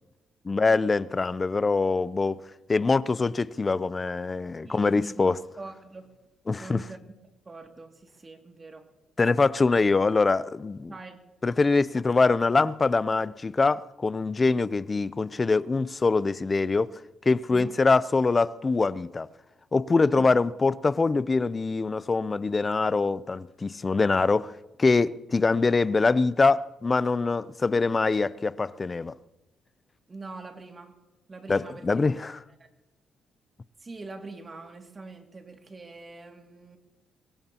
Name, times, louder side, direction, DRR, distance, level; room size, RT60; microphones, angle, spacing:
voice 1, 0.4-2.4 2.7-5.4 6.5-6.8 9.2-10.9 11.4-16.9 17.3-19.3 19.7-24.5 24.8-29.1 31.5-32.4, left 3 dB, 30° left, 0.5 m, -24 dB
voice 2, 4.6-6.1 6.6-7.0 7.5-8.9 10.9-11.2 17.5-17.8 20.1-20.2 30.1-31.0 31.3-32.0 32.6-32.7 33.8-36.8, right 3 dB, 30° right, 2.3 m, -43 dB
23.5 x 18.0 x 2.9 m
cardioid pair, 90°, 0 cm